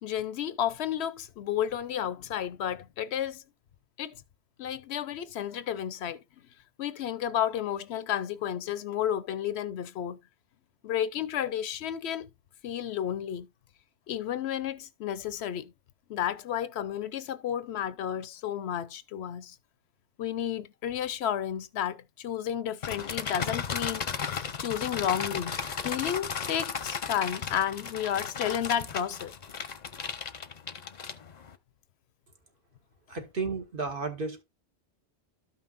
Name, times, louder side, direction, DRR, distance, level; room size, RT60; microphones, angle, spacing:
voice 1, 0.0-3.4 4.0-4.2 4.6-6.2 6.8-10.2 10.8-12.3 12.6-13.5 14.1-15.7 16.1-19.6 20.2-24.0 24.6-29.3, left 10 dB, 75° left, 0.9 m, -32 dB
sound 1, 22.8-31.5, left 6 dB, 45° left, 0.7 m, -35 dB
voice 2, 33.1-34.4, right 4 dB, 55° right, 1.6 m, -33 dB
13.0 x 5.6 x 2.5 m
omnidirectional pair, 1.1 m